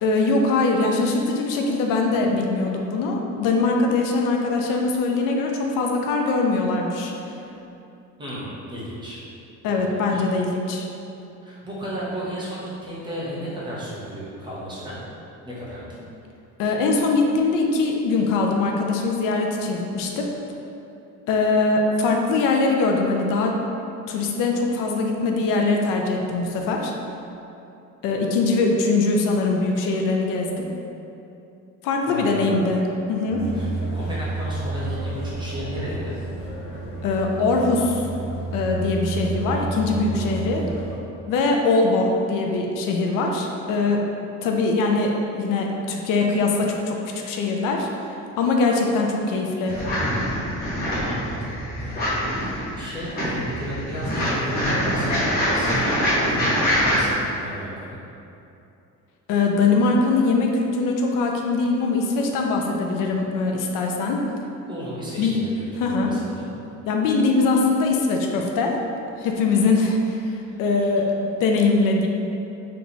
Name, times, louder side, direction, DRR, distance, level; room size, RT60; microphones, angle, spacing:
voice 1, 0.0-7.1 9.6-10.9 16.6-20.3 21.3-23.6 24.1-26.9 28.0-30.7 31.8-32.8 33.1-33.5 37.0-38.0 38.5-40.7 41.3-44.0 44.4-47.0 47.2-47.9 48.4-49.8 59.3-64.2 65.2-65.3 65.8-66.1 66.9-68.8 69.2-70.2 70.6-72.1, left 3 dB, 80° left, 1 dB, 0.6 m, -22 dB
voice 2, 8.2-9.2 9.9-10.2 11.4-15.0 15.4-16.0 32.0-32.6 33.5-36.1 51.0-55.8 56.3-58.0 64.7-66.5 70.4-70.9, equal, 15° right, -8 dB, 0.7 m, -34 dB
sound 1, 33.3-41.0, right 2 dB, 60° left, 1.5 m, -30 dB
sound 2, 49.7-57.0, equal, 30° left, 1.2 m, -24 dB
3.5 x 2.9 x 3.9 m, 2.8 s
cardioid pair, 165°, 32 cm